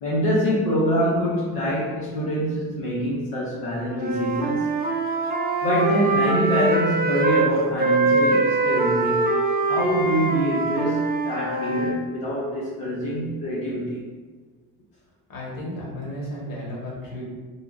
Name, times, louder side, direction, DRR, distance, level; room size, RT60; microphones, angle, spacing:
voice 1, 0.0-4.8 5.6-9.3 9.7-14.0, equal, 75° left, -7 dB, 0.8 m, -25 dB
Wind instrument woodwind instrument, 3.9-7.5 7.8-12.0, right 3 dB, 20° right, 0.5 m, -23 dB
voice 2, 15.3-17.2, left 1 dB, 50° left, -4 dB, 1.3 m, -33 dB
3.5 x 2.5 x 2.4 m, 1.4 s
supercardioid pair, 65°, 45 cm